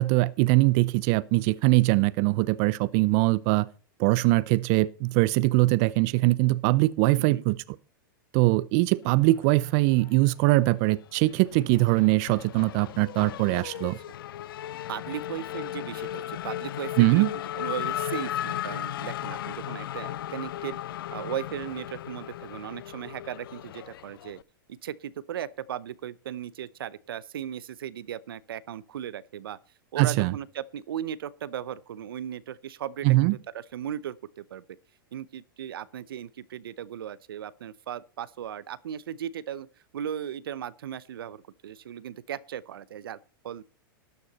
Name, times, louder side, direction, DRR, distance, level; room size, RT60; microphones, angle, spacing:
voice 1, 0.0-3.7 4.0-7.6 8.3-14.0 17.0-17.3 30.0-30.3 33.0-33.4, right 20 dB, 45° right, 0.6 m, -22 dB
Race car auto racing / Accelerating revving vroom, 9.4-10.4 10.7-24.4, left 12 dB, 80° left, 0.4 m, -36 dB
voice 2, 14.9-20.8 21.1-24.4 24.7-29.6 29.9-34.6 35.1-39.7 39.9-43.2 43.4-43.6, right 10 dB, 80° right, 0.7 m, -37 dB
13.0 x 9.5 x 4.1 m
hypercardioid pair, 125°, 12 cm